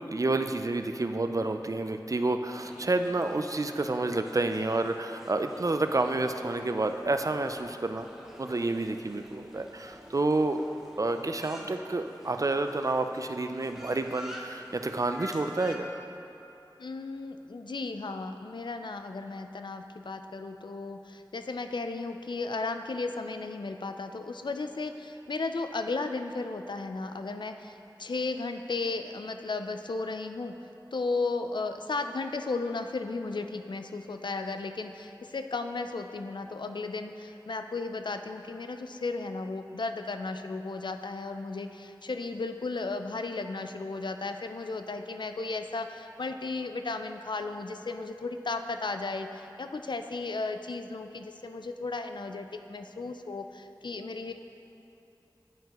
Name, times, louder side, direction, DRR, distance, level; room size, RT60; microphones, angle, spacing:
voice 1, 0.0-8.1 8.4-10.6 11.0-16.0, right 2 dB, 45° right, 7 dB, 0.3 m, -29 dB
sound 1, 2.6-15.8, equal, 5° right, 0.8 m, -48 dB
voice 2, 16.8-30.5 30.9-54.3, left 3 dB, 70° left, 7 dB, 0.3 m, -35 dB
9.1 x 5.4 x 2.9 m, 2.9 s
wide cardioid pair, 50°, 8 cm